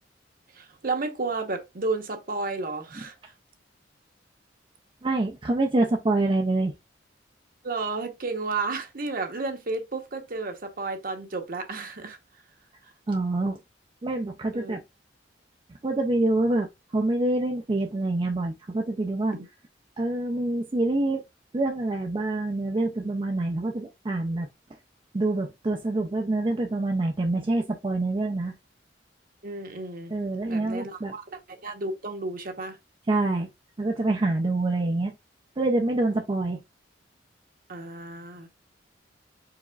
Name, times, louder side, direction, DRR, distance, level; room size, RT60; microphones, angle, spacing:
voice 1, 0.5-3.3 7.6-12.2 14.5-14.8 29.4-30.1 30.5-32.8 37.7-38.5, right 3 dB, 55° right, 1.0 m, -32 dB
voice 2, 5.0-6.7 13.1-13.6 14.0-14.8 15.8-16.7 16.9-19.3 20.0-21.2 21.5-24.5 25.1-28.6 30.1-31.1 33.1-33.5 33.8-35.1 35.6-36.6, right 2 dB, 30° right, 0.4 m, -26 dB
4.8 x 4.1 x 2.3 m
head